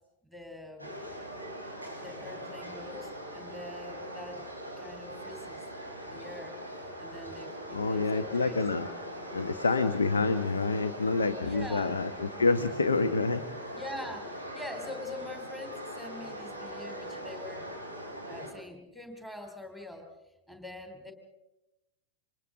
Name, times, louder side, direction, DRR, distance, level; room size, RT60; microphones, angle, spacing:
voice 1, 0.2-0.9 2.0-4.5 4.8-5.6 6.0-6.6 7.0-8.6 11.4-11.9 13.7-17.7 18.3-20.1 20.5-21.1, left 2 dB, 5° left, 4 dB, 3.2 m, -44 dB
sound 1, 0.8-18.5, equal, 90° left, 6.3 m, -41 dB
voice 2, 7.7-8.9 9.3-13.4, left 3 dB, 75° left, 9 dB, 1.2 m, -27 dB
29.0 x 25.5 x 3.8 m, 0.93 s
figure-of-eight pair, 90°, 0 cm